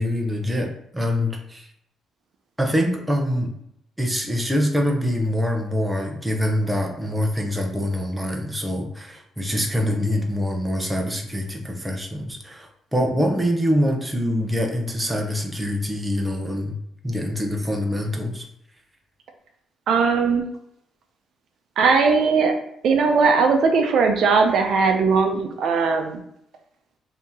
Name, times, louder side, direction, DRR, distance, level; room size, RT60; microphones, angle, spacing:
voice 1, 0.0-1.7 2.6-3.5 4.0-16.8 17.0-18.4, equal, 10° right, 2 dB, 0.7 m, -24 dB
voice 2, 19.9-20.5 21.8-22.6 22.8-26.2, right 4 dB, 70° right, 4 dB, 0.5 m, -19 dB
2.9 x 2.8 x 3.6 m, 0.74 s
cardioid pair, 90°, 0 cm